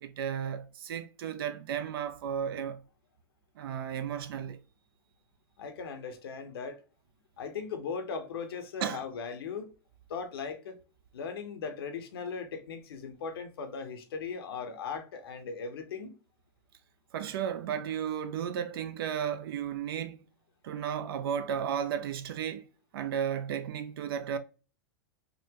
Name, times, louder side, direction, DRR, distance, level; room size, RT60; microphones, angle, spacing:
voice 1, 0.0-2.8 3.6-4.6 8.8-9.0 17.1-20.2 20.6-22.7 22.9-24.4, right 8 dB, 75° right, 0.4 m, -34 dB
voice 2, 5.6-6.8 7.4-9.7 10.1-10.8 11.1-16.1, left 5 dB, 80° left, 0.7 m, -38 dB
3.7 x 2.1 x 2.8 m
hypercardioid pair, 105°, 12 cm